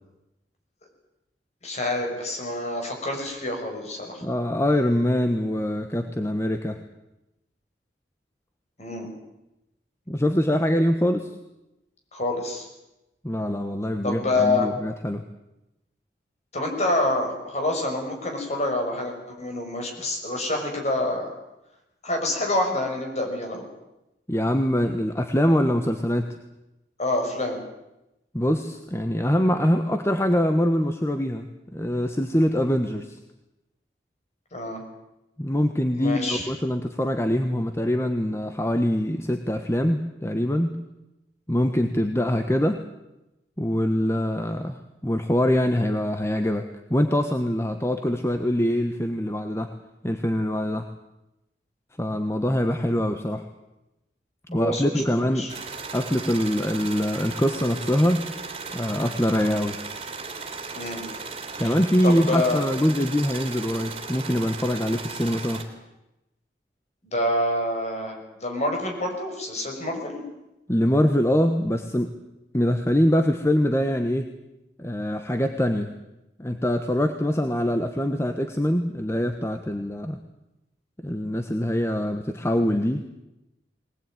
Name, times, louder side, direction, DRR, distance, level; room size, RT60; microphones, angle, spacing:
voice 1, 1.6-4.2 8.8-9.1 12.1-12.7 14.0-14.7 16.5-21.4 22.0-23.7 27.0-27.6 34.5-34.8 35.9-36.5 54.5-54.9 55.2-55.5 60.7-61.0 61.6-61.7 62.0-62.6 67.0-70.2, left 1 dB, 40° left, 3 dB, 6.0 m, -27 dB
voice 2, 4.2-6.8 10.1-11.3 13.2-15.2 24.3-26.3 28.3-31.5 31.7-33.2 35.4-40.7 41.5-42.8 43.6-44.8 45.0-49.7 50.0-50.9 52.0-53.5 54.5-55.5 55.9-58.2 58.7-59.8 61.6-65.6 70.7-72.1 72.5-74.3 74.8-75.9 76.4-80.2 81.0-83.0, equal, 15° left, 6 dB, 1.2 m, -24 dB
sound 1, 55.5-65.6, right 4 dB, 35° right, 3.2 m, -36 dB
21.5 x 19.5 x 9.2 m, 0.94 s
head